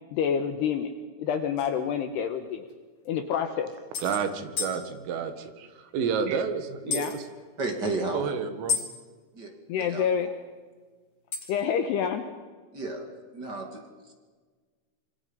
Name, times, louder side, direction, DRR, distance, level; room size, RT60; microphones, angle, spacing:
voice 1, 0.1-0.9 1.2-2.7 3.1-3.7 6.9-7.1 9.7-10.3 11.5-12.2, left 8 dB, 75° left, 8 dB, 2.5 m, -27 dB
sound 1, 1.6-1.7 2.7-2.8 3.0-3.1 3.9-4.2 4.6-4.8 6.9-7.2 8.7-8.9 11.3-11.6, left 5 dB, 35° left, 3.6 m, -30 dB
voice 2, 4.0-7.3 8.1-8.8, right 6 dB, 75° right, 9 dB, 4.1 m, -30 dB
voice 3, 7.6-8.2 9.3-10.3 12.7-13.0 13.3-14.1, right 2 dB, 35° right, 4 dB, 1.7 m, -33 dB
26.5 x 25.5 x 5.5 m, 1.5 s
omnidirectional pair, 5.9 m